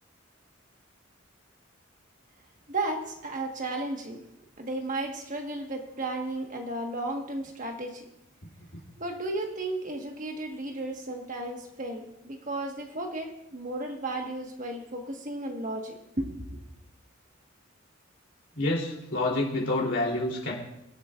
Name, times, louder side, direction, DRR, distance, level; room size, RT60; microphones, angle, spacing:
voice 1, 2.7-4.2 4.6-8.1 9.0-16.6, right 2 dB, 40° right, 3 dB, 1.4 m, -34 dB
voice 2, 18.5-20.5, left 2 dB, 70° left, -2 dB, 3.1 m, -28 dB
23.5 x 8.3 x 2.5 m, 0.85 s
head